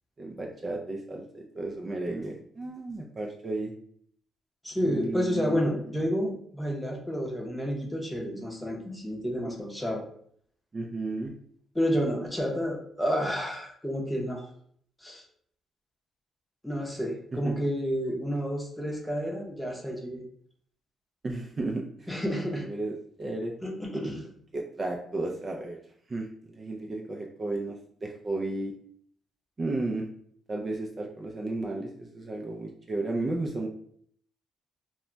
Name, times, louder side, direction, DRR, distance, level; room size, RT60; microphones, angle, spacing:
voice 1, 0.2-3.7 4.8-5.7 10.7-11.3 17.3-17.5 21.2-22.1 22.6-23.5 24.5-25.8 26.1-27.8 28.0-28.7 29.6-30.1 30.5-33.7, right 2 dB, 30° right, 0 dB, 0.4 m, -33 dB
voice 2, 4.6-10.0 11.7-14.4 15.0-15.2 16.6-20.2 22.1-22.6 23.6-24.2, equal, 10° left, 0 dB, 0.7 m, -30 dB
2.2 x 2.1 x 3.8 m, 0.63 s
cardioid pair, 90°, 0 cm